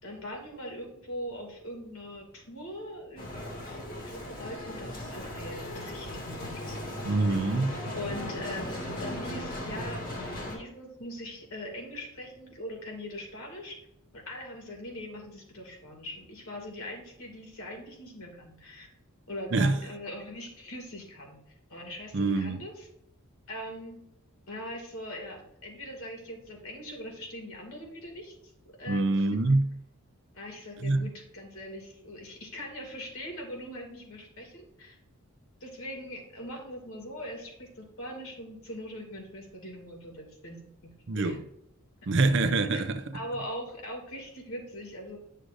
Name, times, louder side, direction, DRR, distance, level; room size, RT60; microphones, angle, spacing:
voice 1, 0.0-3.8 4.1-7.3 7.9-10.2 10.5-13.8 14.1-18.9 19.3-21.4 21.7-22.9 23.5-24.0 24.5-28.3 28.8-29.4 30.3-35.0 35.6-40.6 41.1-41.4 42.7-42.8 43.1-45.2, left 1 dB, 75° left, 2.4 m, -41 dB
Bicycle, 3.2-10.6, left 1 dB, 40° left, 1.9 m, -37 dB
voice 2, 7.1-7.8 19.5-19.8 22.1-22.6 28.9-29.7 30.8-31.1 41.1-41.4 42.1-43.0, right 2 dB, 55° right, 0.6 m, -25 dB
11.0 x 6.4 x 2.6 m
head